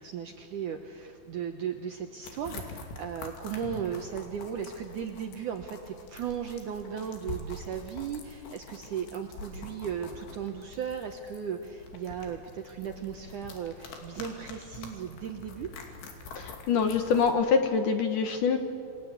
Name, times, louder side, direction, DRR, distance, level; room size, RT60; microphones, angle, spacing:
voice 1, 0.0-15.7, right 8 dB, 70° right, 5 dB, 2.0 m, -36 dB
sound 1, 2.2-17.3, left 3 dB, 80° left, 4.8 m, -45 dB
voice 2, 16.4-18.6, left 5 dB, 60° left, 6 dB, 2.5 m, -25 dB
28.5 x 23.0 x 8.4 m, 2.4 s
omnidirectional pair, 4.9 m